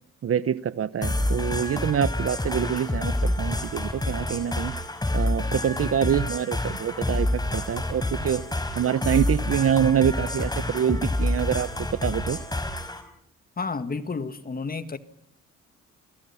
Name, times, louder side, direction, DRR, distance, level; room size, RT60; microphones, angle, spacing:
voice 1, 0.2-4.7 5.1-8.4 8.7-12.4, right 9 dB, 50° right, 1.0 m, -25 dB
sound 1, 1.0-13.0, left 1 dB, 15° left, 5.3 m, -28 dB
voice 2, 13.6-15.0, left 4 dB, 30° left, 1.8 m, -31 dB
29.0 x 21.0 x 5.7 m
cardioid pair, 90°, 30 cm